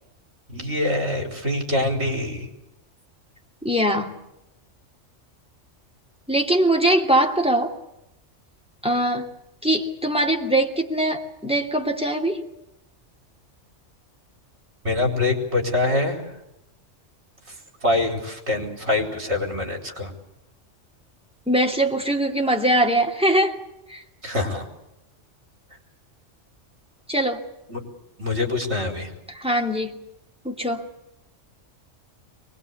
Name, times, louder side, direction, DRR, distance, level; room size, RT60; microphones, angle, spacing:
voice 1, 0.5-2.5 14.8-16.3 17.5-17.6 17.8-20.1 24.2-24.7 27.7-27.8 28.2-29.1, left 2 dB, 60° right, 3 dB, 4.9 m, -24 dB
voice 2, 3.6-4.2 6.3-7.8 8.8-9.3 9.6-12.4 21.5-23.6 23.9-24.0 27.1-27.4 29.3-30.0 30.4-30.9, right 1 dB, 5° right, 2 dB, 2.6 m, -22 dB
23.5 x 20.5 x 8.3 m, 0.86 s
omnidirectional pair, 1.3 m